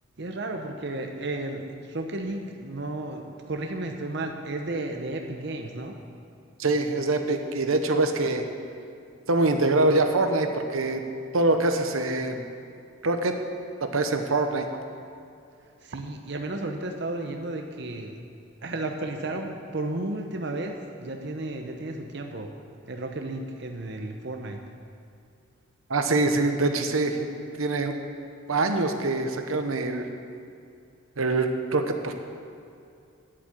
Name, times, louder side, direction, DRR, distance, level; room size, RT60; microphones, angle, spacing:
voice 1, 0.2-6.0 15.8-18.2 18.6-22.5 22.9-24.6, right 2 dB, 55° right, 3 dB, 0.8 m, -33 dB
voice 2, 6.6-8.5 9.3-11.0 11.3-12.4 13.0-13.4 13.8-14.7 25.9-28.0 28.5-30.1 31.2-32.1, right 2 dB, 85° right, 6 dB, 1.0 m, -24 dB
10.0 x 8.3 x 7.8 m, 2.5 s
head